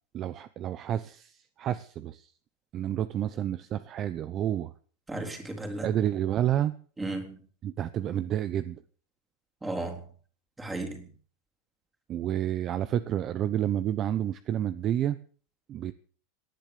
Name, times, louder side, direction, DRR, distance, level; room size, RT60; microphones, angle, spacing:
voice 1, 0.1-1.3 1.6-2.3 2.7-4.7 5.8-6.7 7.6-8.8 12.1-15.2 15.7-15.9, right 11 dB, 35° right, 0.8 m, -29 dB
voice 2, 5.1-5.9 7.0-7.4 9.6-10.0 10.6-11.1, right 2 dB, 10° right, 3.6 m, -34 dB
18.5 x 10.5 x 6.8 m
supercardioid pair, 135°, 0 cm